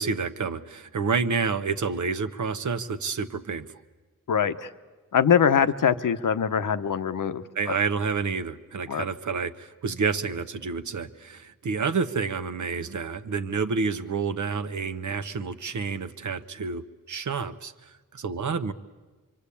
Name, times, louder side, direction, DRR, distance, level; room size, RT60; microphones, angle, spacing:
voice 1, 0.0-3.7 7.5-18.7, right 5 dB, 60° right, 9 dB, 1.1 m, -29 dB
voice 2, 4.3-4.7 5.1-7.4 8.9-9.0, left 7 dB, 70° left, 10 dB, 1.0 m, -23 dB
26.0 x 24.0 x 8.5 m, 1.3 s
wide cardioid pair, 95°, 33 cm